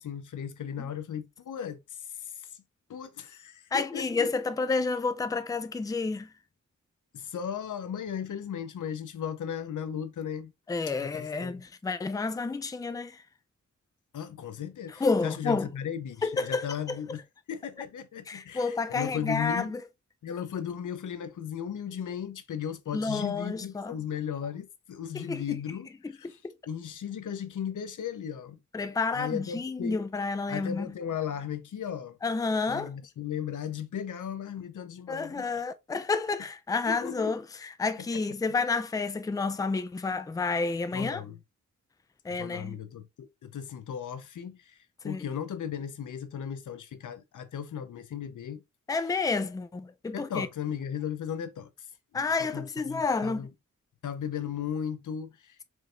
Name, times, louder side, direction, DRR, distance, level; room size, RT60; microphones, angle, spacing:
voice 1, 0.0-2.5 2.9-4.3 7.1-10.5 11.0-11.6 14.1-17.2 17.5-19.8 20.2-26.4 26.7-28.6 29.1-30.0 30.5-32.2 32.7-35.6 36.9-37.3 38.1-38.2 40.9-41.4 42.3-44.8 45.0-48.6 50.1-51.7 52.1-53.5 54.0-55.6, left 8 dB, 85° left, 0.7 m, -36 dB
voice 2, 3.7-6.3 10.7-13.2 15.0-15.7 16.2-16.7 18.3-19.8 22.9-23.9 25.1-25.6 28.7-30.9 32.2-32.9 35.1-41.2 42.2-42.8 45.0-45.2 48.9-50.5 52.1-53.5, left 4 dB, 10° left, 0.4 m, -30 dB
4.7 x 3.2 x 2.5 m
cardioid pair, 80°, 30 cm